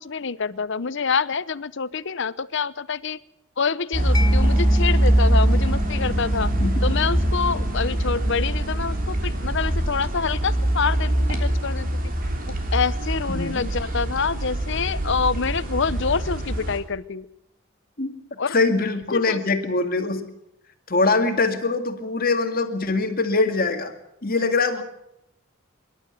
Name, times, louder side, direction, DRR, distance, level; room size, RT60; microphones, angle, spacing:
voice 1, 0.0-3.2 3.6-6.5 6.8-12.0 12.7-17.3 18.4-18.6 19.1-19.6, left 5 dB, 60° left, 17 dB, 0.8 m, -26 dB
sound 1, 3.9-16.8, right 1 dB, 45° right, 3.3 m, -23 dB
Mallet percussion, 4.1-11.5, left 1 dB, 20° left, 1.1 m, -35 dB
voice 2, 13.3-13.7 18.0-18.2 18.5-20.3 20.9-23.9 24.2-24.8, left 3 dB, 45° left, 6 dB, 2.2 m, -23 dB
25.5 x 12.0 x 9.1 m, 0.82 s
head